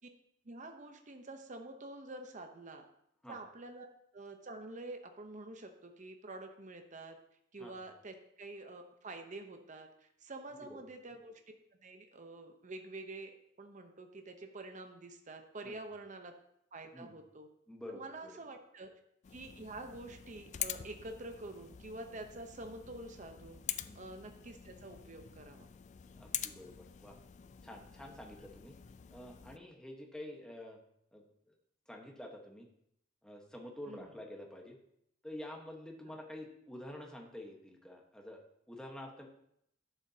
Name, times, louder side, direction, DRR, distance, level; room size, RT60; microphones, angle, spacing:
voice 1, 0.4-2.8 3.3-3.9 4.1-7.2 7.5-11.4 11.8-16.3 16.7-17.5 17.9-18.9 19.3-23.6 23.9-25.7 33.9-34.1 36.1-36.2, right 2 dB, 40° right, 5 dB, 0.9 m, -47 dB
voice 2, 17.7-18.4 23.8-24.1 26.1-27.2 27.6-28.7 29.1-30.8 31.1-31.2 31.9-32.7 33.2-34.8 35.2-38.4 38.7-39.3, left 1 dB, 5° left, 0 dB, 1.3 m, -48 dB
sound 1, 19.2-29.6, left 11 dB, 40° left, 0.3 m, -46 dB
11.5 x 7.2 x 2.8 m, 0.74 s
head